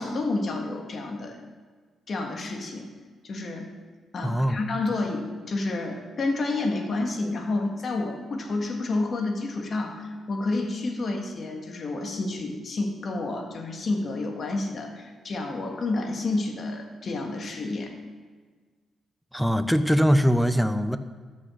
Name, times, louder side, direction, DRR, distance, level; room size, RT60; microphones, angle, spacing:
voice 1, 0.0-1.4 2.1-2.9 3.2-3.7 4.1-17.9, left 2 dB, 50° left, 3 dB, 1.7 m, -29 dB
voice 2, 4.2-4.6 19.3-21.0, equal, ahead, 11 dB, 0.6 m, -22 dB
13.0 x 6.3 x 6.3 m, 1.5 s
cardioid pair, 100°, 0 cm